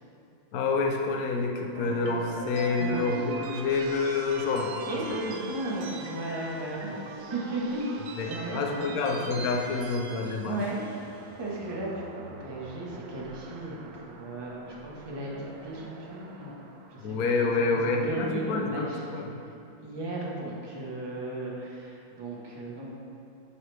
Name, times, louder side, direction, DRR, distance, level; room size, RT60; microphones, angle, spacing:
voice 1, 0.5-4.7 8.2-10.6 17.0-19.4, left 4 dB, 65° left, 2 dB, 1.0 m, -28 dB
sound 1, 1.7-17.9, right 4 dB, 85° right, 0.7 m, -42 dB
voice 2, 4.9-7.0 7.3-8.0 8.3-9.4 10.5-10.8 11.4-16.6 16.9-17.2 17.4-19.0 19.8-22.9, right 1 dB, 20° right, -5 dB, 0.8 m, -35 dB
10.0 x 4.8 x 3.3 m, 2.6 s
omnidirectional pair, 2.1 m